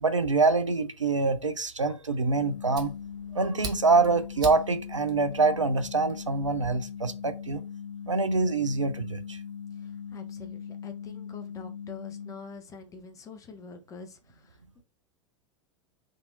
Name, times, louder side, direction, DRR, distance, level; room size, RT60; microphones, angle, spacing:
voice 1, 0.0-2.9 3.3-7.6 8.1-9.4, right 3 dB, 90° right, 0.4 m, -25 dB
Fire, 2.1-6.7, right 2 dB, 25° right, 0.9 m, -43 dB
sound 1, 2.3-12.3, left 7 dB, 65° left, 0.8 m, -40 dB
voice 2, 9.7-14.8, left 4 dB, 20° left, 0.7 m, -46 dB
3.6 x 2.6 x 2.7 m
figure-of-eight pair, 90°, 15 cm